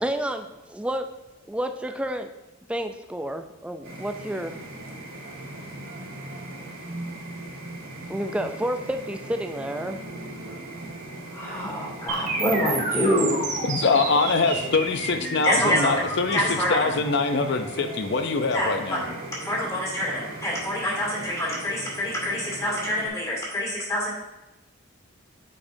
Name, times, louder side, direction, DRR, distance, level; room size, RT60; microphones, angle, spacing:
voice 1, 0.0-1.1 1.5-2.3 2.7-4.5 8.1-10.0, right 1 dB, 5° right, 6 dB, 0.3 m, -30 dB
sound 1, 3.8-23.1, right 1 dB, 85° right, 2.6 m, -39 dB
voice 2, 11.3-13.4 15.4-16.0 16.3-16.9 18.5-19.1 19.4-24.1, equal, 15° left, -5 dB, 2.4 m, -26 dB
sound 2, 12.1-20.0, right 3 dB, 35° right, 1.1 m, -32 dB
voice 3, 13.7-19.0, left 4 dB, 55° left, 8 dB, 0.5 m, -24 dB
8.6 x 6.3 x 2.7 m, 1.0 s
head